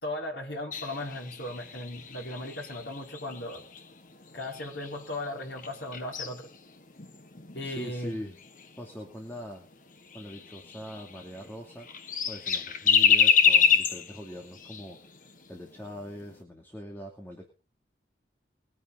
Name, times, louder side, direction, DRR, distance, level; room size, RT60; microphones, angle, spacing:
voice 1, 0.0-3.6 4.3-6.5 7.5-8.2, left 1 dB, 85° left, -1 dB, 5.0 m, -37 dB
sound 1, 0.7-5.3 5.5-8.9 9.4-9.5 9.7-9.8 10.1-11.5 11.8-15.3 15.6-15.7 16.1-16.3, left 7 dB, 50° left, 1.3 m, -27 dB
voice 2, 7.6-8.4 8.8-9.7 10.1-11.9 12.3-17.5, equal, 10° left, 0 dB, 2.6 m, -42 dB
21.5 x 9.7 x 4.1 m, 0.34 s
head